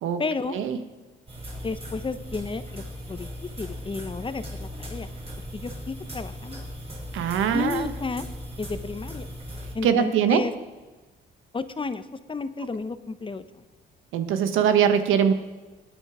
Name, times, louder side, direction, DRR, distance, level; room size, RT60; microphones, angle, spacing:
voice 1, 0.2-0.6 1.6-3.3 3.6-5.1 5.5-6.7 7.5-8.3 8.6-9.3 9.7-10.5 11.5-13.6, left 4 dB, 25° left, 11 dB, 0.9 m, -32 dB
sound 1, 1.3-9.7, equal, 30° right, 4.5 m, -38 dB
voice 2, 7.1-7.9 9.8-10.4 14.1-15.3, right 8 dB, 90° right, 9 dB, 1.2 m, -22 dB
19.5 x 9.1 x 4.9 m, 1.2 s
cardioid pair, 90°, 20 cm